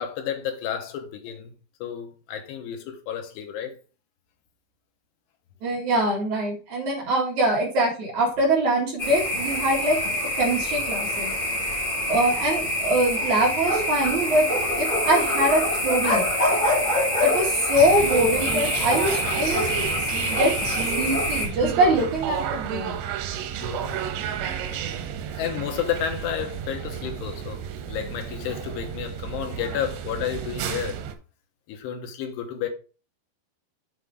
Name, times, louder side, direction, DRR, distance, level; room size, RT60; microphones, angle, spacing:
voice 1, 0.0-1.5 1.8-3.7 23.6-24.0 24.7-24.8 25.3-31.0 31.7-32.7, left 9 dB, 90° left, 3.3 m, -31 dB
voice 2, 5.6-10.0 10.4-11.3 12.1-14.5 14.8-16.2 17.2-19.9 20.2-20.6 21.0-23.0, right 1 dB, 50° right, 3.1 m, -23 dB
sound 1, 9.0-21.5, left 1 dB, 20° left, 1.4 m, -25 dB
sound 2, 17.7-31.2, right 9 dB, 90° right, 3.1 m, -32 dB
8.1 x 4.0 x 4.8 m
omnidirectional pair, 4.8 m